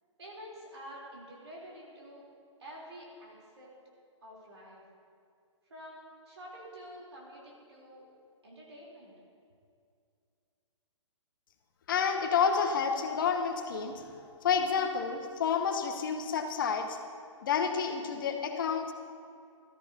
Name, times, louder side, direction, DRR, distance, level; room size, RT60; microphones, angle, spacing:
voice 1, 0.2-2.3 2.6-3.7 4.2-4.8 5.7-8.0 8.4-9.1, equal, 60° right, -4 dB, 3.6 m, -48 dB
voice 2, 11.9-14.0 14.4-17.0 17.4-18.9, left 6 dB, 40° left, 5 dB, 1.1 m, -29 dB
19.5 x 13.5 x 2.8 m, 2.4 s
figure-of-eight pair, 125°, 16 cm